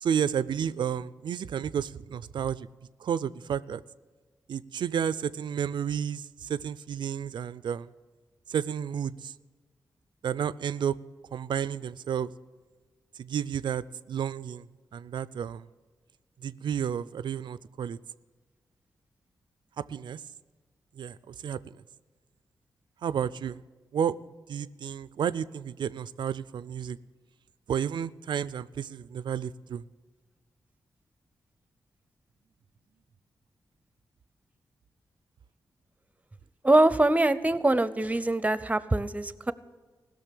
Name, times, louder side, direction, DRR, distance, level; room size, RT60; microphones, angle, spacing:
voice 1, 0.0-2.7 3.0-3.8 4.5-7.9 8.5-9.3 10.2-11.0 11.3-12.3 13.2-14.7 14.9-15.7 16.4-18.0 19.8-20.2 21.0-21.6 23.0-23.6 23.9-24.2 24.5-27.0 27.7-29.8, right 8 dB, 75° right, 18 dB, 0.4 m, -31 dB
voice 2, 36.6-39.5, right 2 dB, 20° right, 16 dB, 0.7 m, -23 dB
16.5 x 6.5 x 8.3 m, 1.4 s
cardioid pair, 45°, 8 cm